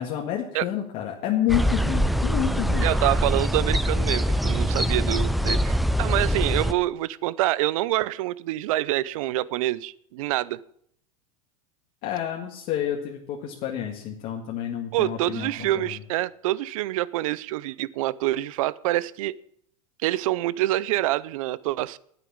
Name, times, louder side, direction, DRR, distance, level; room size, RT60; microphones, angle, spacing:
voice 1, 0.0-2.9 12.0-16.0, left 10 dB, 50° left, -1 dB, 1.9 m, -29 dB
sound 1, 1.5-6.7, equal, ahead, 0.4 m, -23 dB
voice 2, 2.8-10.6 14.9-19.3 20.0-22.0, right 16 dB, 70° right, 21 dB, 0.6 m, -26 dB
9.4 x 9.1 x 8.6 m, 0.68 s
hypercardioid pair, 115°, 18 cm